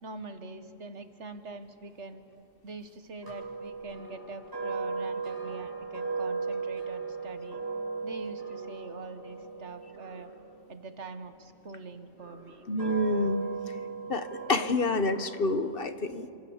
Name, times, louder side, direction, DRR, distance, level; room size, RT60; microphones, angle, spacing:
voice 1, 0.0-2.2 2.6-7.6 8.0-10.3 10.7-12.6, right 3 dB, 65° right, 9 dB, 1.6 m, -44 dB
sound 1, 3.2-11.4 12.1-15.6, right 4 dB, 15° right, 8.1 m, -37 dB
voice 2, 12.7-13.8 14.1-16.3, left 2 dB, 50° left, 10 dB, 1.2 m, -28 dB
29.5 x 26.0 x 7.2 m, 2.7 s
omnidirectional pair, 1.3 m